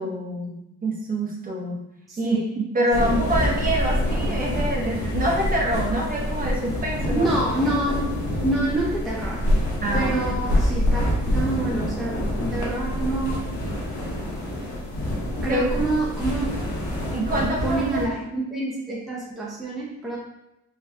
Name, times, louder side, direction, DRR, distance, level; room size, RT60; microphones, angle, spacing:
voice 1, 0.0-1.8 2.2-2.4 2.7-7.3 9.8-10.1 15.5-15.7 17.1-18.0, right 1 dB, 30° right, -2 dB, 0.8 m, -26 dB
voice 2, 2.1-2.5 3.0-3.2 7.1-8.2 8.4-9.4 9.9-13.5 15.4-16.6 17.6-20.2, right 2 dB, ahead, -5 dB, 0.5 m, -27 dB
sound 1, 2.9-18.0, equal, 75° left, 0.9 m, -26 dB
3.3 x 2.2 x 2.6 m, 0.87 s
cardioid pair, 90°, 30 cm